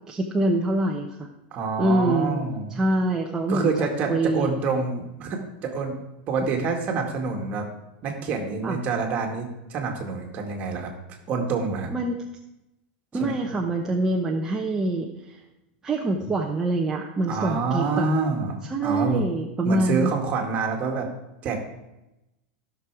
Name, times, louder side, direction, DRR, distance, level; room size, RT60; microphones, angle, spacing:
voice 1, 0.1-1.3 1.8-4.5 8.6-8.8 11.9-12.2 13.1-15.4 15.8-18.2 18.7-20.1, right 2 dB, 10° right, -1 dB, 0.8 m, -25 dB
voice 2, 1.5-2.8 3.5-6.0 6.3-7.7 8.0-10.9 11.3-11.9 13.2-13.3 17.3-19.2 19.6-21.1 21.4-21.6, right 4 dB, 30° right, 2 dB, 1.9 m, -27 dB
15.0 x 6.3 x 4.8 m, 0.94 s
supercardioid pair, 160°, 5 cm